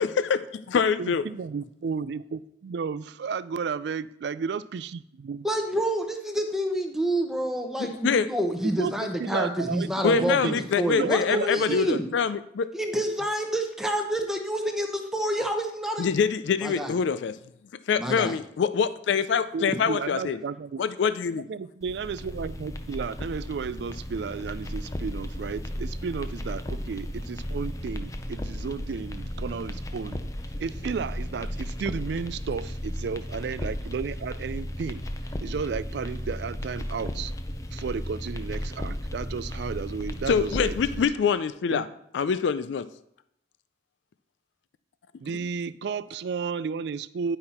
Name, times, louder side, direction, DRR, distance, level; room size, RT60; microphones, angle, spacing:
voice 1, 0.0-1.3 7.8-8.3 10.0-12.7 16.0-17.4 17.9-20.4 20.8-21.5 40.3-41.9 42.1-42.9, left 6 dB, 80° left, 15 dB, 0.4 m, -25 dB
voice 2, 1.0-5.0 5.2-5.4 8.6-10.6 10.9-11.8 19.5-20.8 21.5-30.2 30.6-35.0 35.4-37.3 37.7-41.0 41.7-41.8 45.2-47.4, right 5 dB, 70° right, 17 dB, 0.3 m, -33 dB
voice 3, 5.4-12.1 12.7-16.1 16.6-16.9 18.0-18.4, right 1 dB, ahead, 4 dB, 0.8 m, -28 dB
sound 1, 21.8-41.0, equal, 20° left, 0.5 m, -35 dB
9.7 x 5.6 x 4.3 m, 0.73 s
head